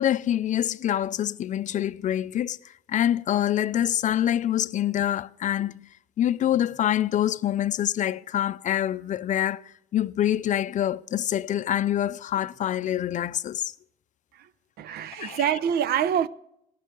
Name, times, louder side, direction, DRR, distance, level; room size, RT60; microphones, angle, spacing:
voice 1, 0.0-13.7 15.1-15.6, left 11 dB, 45° left, 0.5 m, -26 dB
voice 2, 14.8-16.3, right 9 dB, 65° right, 0.7 m, -25 dB
18.5 x 12.0 x 3.8 m
cardioid pair, 110°, 17 cm